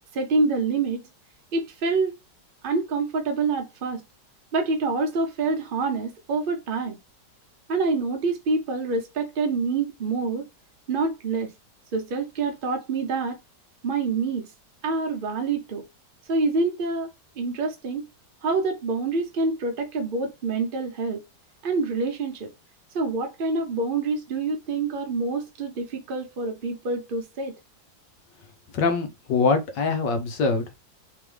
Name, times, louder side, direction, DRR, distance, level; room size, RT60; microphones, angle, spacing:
voice 1, 0.1-1.0 1.5-2.2 2.6-4.0 4.5-7.0 7.7-10.5 10.9-11.5 11.9-13.4 13.8-14.5 14.8-15.9 16.3-17.1 17.4-18.1 18.4-21.2 21.6-22.5 22.9-27.5, right 3 dB, 60° right, 0.5 m, -26 dB
voice 2, 28.7-30.8, left 4 dB, 75° left, 1.6 m, -23 dB
3.6 x 3.5 x 3.3 m
omnidirectional pair, 1.9 m